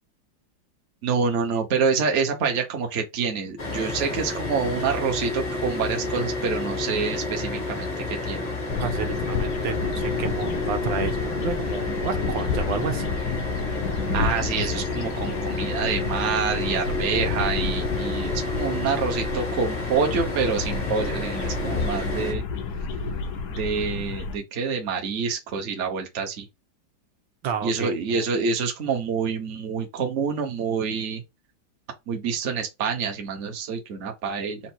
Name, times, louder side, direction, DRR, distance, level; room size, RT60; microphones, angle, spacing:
voice 1, 1.0-8.5 14.1-22.4 23.6-26.4 27.6-31.2 32.1-34.6, right 5 dB, 45° right, 1.1 m, -27 dB
sound 1, 3.6-22.3, left 2 dB, 30° left, 0.8 m, -30 dB
sound 2, 8.7-24.4, left 5 dB, 65° left, 1.3 m, -30 dB
voice 2, 8.8-13.0 27.4-28.3, right 7 dB, 80° right, 1.5 m, -31 dB
4.4 x 2.6 x 4.3 m
omnidirectional pair, 2.1 m